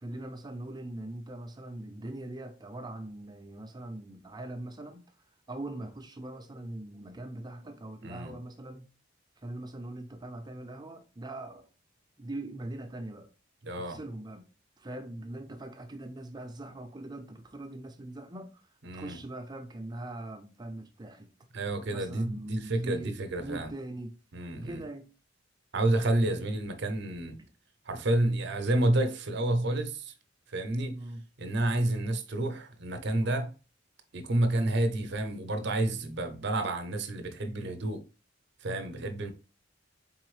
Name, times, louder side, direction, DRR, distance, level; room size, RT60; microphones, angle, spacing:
voice 1, 0.0-5.0 5.5-8.9 9.4-11.7 12.2-13.3 13.8-14.4 14.8-18.7 18.9-21.3 21.9-24.2 24.6-25.1 27.4-27.5 30.9-31.2, right 1 dB, 20° right, 0.5 m, -41 dB
voice 2, 8.0-8.3 13.6-14.0 18.8-19.2 21.5-23.7 24.3-24.8 25.7-27.4 27.9-30.1 30.5-31.0 31.4-33.5 34.1-38.0 38.6-39.3, right 1 dB, 60° right, 0.7 m, -29 dB
4.0 x 3.8 x 3.1 m
head